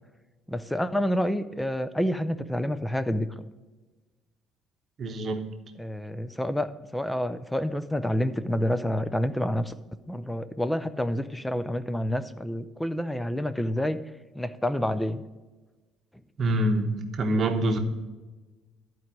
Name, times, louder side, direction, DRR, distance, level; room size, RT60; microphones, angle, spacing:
voice 1, 0.5-3.3 5.8-9.7 10.1-14.0 14.3-15.2, equal, 5° left, 13 dB, 0.4 m, -28 dB
voice 2, 5.0-5.4 16.4-17.8, right 1 dB, 35° right, 6 dB, 1.0 m, -25 dB
11.5 x 4.6 x 6.1 m, 1.2 s
cardioid pair, 160°, 0 cm